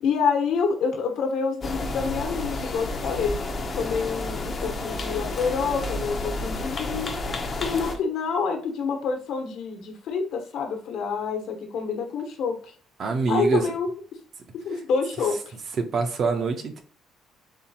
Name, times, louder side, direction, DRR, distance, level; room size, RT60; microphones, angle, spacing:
voice 1, 0.0-3.4 3.7-7.1 7.6-12.7 13.3-13.9 14.6-15.5, left 5 dB, 65° left, 4 dB, 1.1 m, -27 dB
sound 1, 1.6-8.0, left 2 dB, 25° left, 0.6 m, -31 dB
voice 2, 13.0-13.6 15.8-16.8, right 4 dB, 35° right, 7 dB, 0.6 m, -24 dB
4.2 x 3.8 x 2.8 m, 0.42 s
cardioid pair, 170°, 0 cm